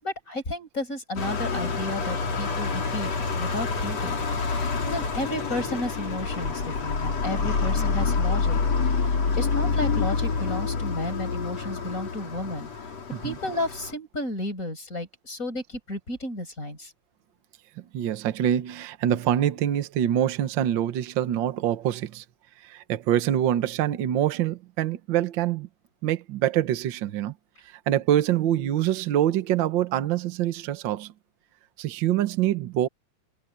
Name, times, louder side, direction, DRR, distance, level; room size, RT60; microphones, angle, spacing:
voice 1, 0.0-3.1 3.4-8.6 9.0-12.7 13.2-16.9, left 1 dB, 25° left, 6.4 m, -33 dB
sound 1, 1.2-13.9, left 4 dB, 55° left, 4.7 m, -27 dB
voice 2, 17.9-22.2 22.6-25.7 26.0-27.3 27.6-31.1 31.8-32.9, right 11 dB, 60° right, 1.3 m, -25 dB
omnidirectional pair, 3.5 m